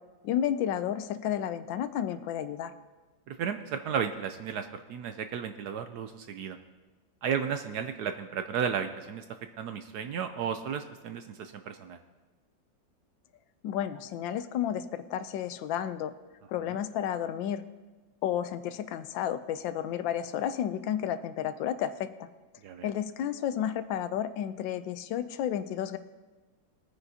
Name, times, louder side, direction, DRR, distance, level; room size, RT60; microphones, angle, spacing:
voice 1, 0.2-2.7 13.6-16.1 16.5-17.6 18.2-22.3 22.8-26.0, left 10 dB, 80° left, 11 dB, 1.3 m, -32 dB
voice 2, 3.3-6.6 7.2-9.2 9.6-12.0 22.6-22.9, right 7 dB, 70° right, 8 dB, 1.0 m, -33 dB
20.5 x 9.7 x 2.8 m, 1.3 s
omnidirectional pair, 2.1 m